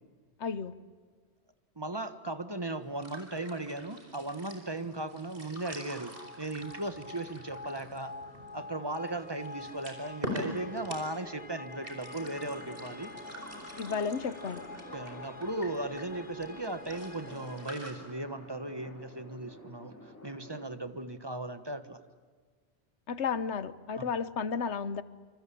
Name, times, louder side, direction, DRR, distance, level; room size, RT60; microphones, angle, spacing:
voice 1, 0.4-0.7 13.8-14.6 23.1-25.0, left 6 dB, 85° left, 15 dB, 1.3 m, -33 dB
voice 2, 1.8-6.1 6.4-8.1 8.5-13.1 14.9-19.9 20.2-22.0 23.9-24.0, right 2 dB, 20° right, 10 dB, 1.4 m, -37 dB
sound 1, 2.7-17.9, equal, 55° right, 4.9 m, -46 dB
sound 2, 5.6-18.4, left 3 dB, 40° left, 1.4 m, -47 dB
sound 3, 12.1-20.8, left 1 dB, 15° left, 4.7 m, -50 dB
27.0 x 26.0 x 8.6 m, 1.5 s
omnidirectional pair, 1.1 m